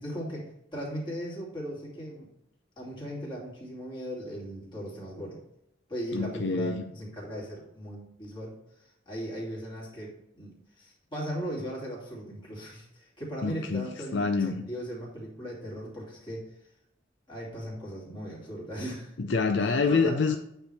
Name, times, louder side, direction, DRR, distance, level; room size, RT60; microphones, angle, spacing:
voice 1, 0.0-2.3 2.8-5.4 5.9-8.5 9.1-16.5 17.3-19.2 19.6-20.2, equal, 25° left, -4 dB, 2.6 m, -38 dB
voice 2, 6.1-6.8 13.4-13.9 14.1-14.6 19.2-20.4, left 4 dB, 70° left, 6 dB, 0.5 m, -26 dB
8.9 x 3.4 x 5.5 m, 0.80 s
head